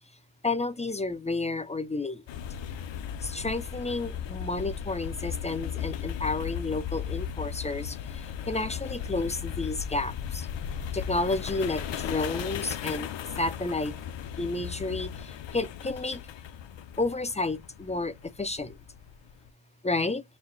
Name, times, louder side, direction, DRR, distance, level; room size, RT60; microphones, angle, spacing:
voice 1, 0.4-2.2 3.2-10.5 10.9-13.1 13.4-13.9 14.4-16.2 17.0-18.7 19.8-20.2, left 2 dB, 15° left, 0.3 m, -31 dB
sound 1, 2.3-19.5, left 9 dB, 60° left, 0.6 m, -36 dB
4.3 x 2.2 x 3.8 m
wide cardioid pair, 140°, 50 cm